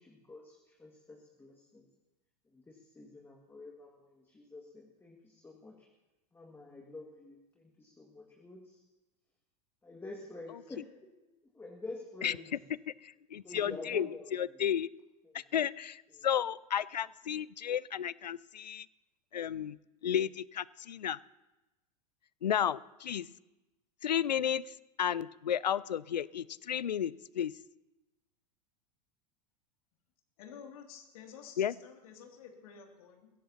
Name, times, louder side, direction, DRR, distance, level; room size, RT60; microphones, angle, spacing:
voice 1, 0.0-1.9 2.5-5.9 6.3-8.8 9.8-11.1 11.5-12.5 13.4-14.6 15.3-15.4 16.1-16.3, left 2 dB, 10° left, 0 dB, 1.9 m, -48 dB
voice 2, 12.9-14.9 15.3-18.9 19.3-19.8 20.0-21.2 22.4-23.3 24.0-27.5 31.6-31.7, left 9 dB, 80° left, 22 dB, 0.4 m, -33 dB
voice 3, 30.4-33.3, left 7 dB, 60° left, 2 dB, 2.5 m, -51 dB
22.0 x 16.5 x 2.9 m, 1.0 s
figure-of-eight pair, 90°, 21 cm